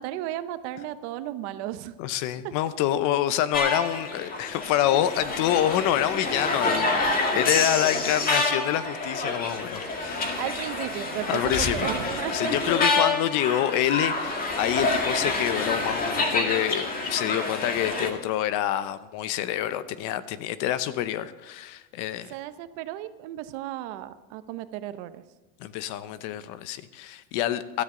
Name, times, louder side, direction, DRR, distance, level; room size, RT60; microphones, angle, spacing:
voice 1, 0.0-1.9 2.4-2.5 10.4-12.5 22.3-25.2, right 13 dB, 60° right, 11 dB, 1.0 m, -34 dB
voice 2, 2.0-10.4 11.3-22.3 25.6-27.8, left 12 dB, 50° left, 14 dB, 0.8 m, -27 dB
sound 1, 3.5-18.1, left 3 dB, 20° left, 2.0 m, -28 dB
18.0 x 13.0 x 3.8 m, 1.1 s
supercardioid pair, 145°, 39 cm